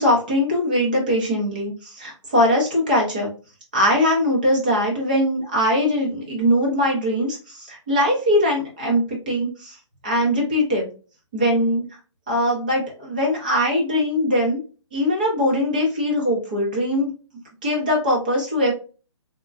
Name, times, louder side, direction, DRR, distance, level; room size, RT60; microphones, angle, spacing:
voice 1, 0.0-3.3 3.7-9.8 10.0-10.9 11.3-11.8 12.3-14.6 14.9-17.1 17.6-18.7, left 1 dB, 15° right, -1 dB, 0.6 m, -21 dB
3.5 x 2.1 x 2.4 m, 0.36 s
hypercardioid pair, 180°, 16 cm